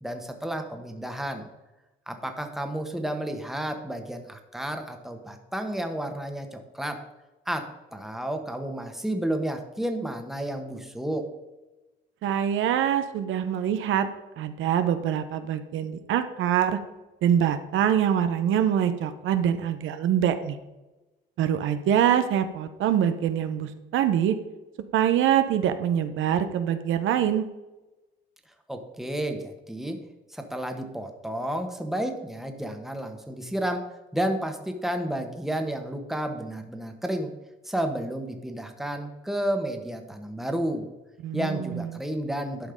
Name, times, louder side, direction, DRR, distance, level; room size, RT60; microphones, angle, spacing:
voice 1, 0.0-1.5 2.1-7.0 7.5-11.3 28.7-30.0 30.3-37.3 37.6-40.9 41.3-42.7, right 1 dB, ahead, 5 dB, 1.3 m, -31 dB
voice 2, 12.2-14.1 14.4-16.8 17.2-20.6 21.4-24.4 24.9-27.5 41.2-41.9, right 9 dB, 80° right, 9 dB, 0.8 m, -24 dB
11.5 x 5.3 x 5.2 m, 1.1 s
cardioid pair, 90°, 20 cm